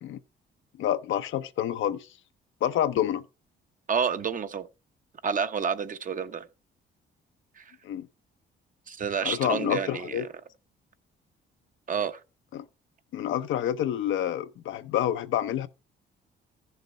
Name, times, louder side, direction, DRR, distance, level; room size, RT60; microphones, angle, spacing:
voice 1, 0.8-2.1 2.6-3.2 7.8-8.1 9.2-10.3 12.5-12.6 13.1-15.7, left 11 dB, 75° left, 0.7 m, -28 dB
voice 2, 3.9-4.7 5.2-6.4 7.6-7.7 8.9-10.3 11.9-12.2, right 6 dB, 40° right, 0.8 m, -29 dB
14.5 x 6.7 x 3.2 m
cardioid pair, 90°, 20 cm